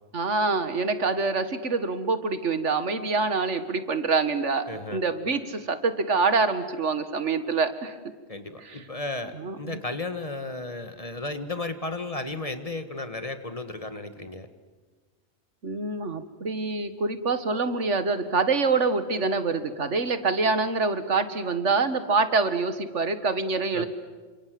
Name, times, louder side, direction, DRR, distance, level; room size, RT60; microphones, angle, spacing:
voice 1, 0.1-8.0 8.6-8.8 9.3-9.8 15.6-23.9, right 4 dB, 85° right, 11 dB, 2.0 m, -26 dB
voice 2, 4.7-5.0 8.3-14.5 23.8-23.9, left 2 dB, 30° left, 9 dB, 1.8 m, -34 dB
29.0 x 26.0 x 7.7 m, 1.4 s
omnidirectional pair, 1.2 m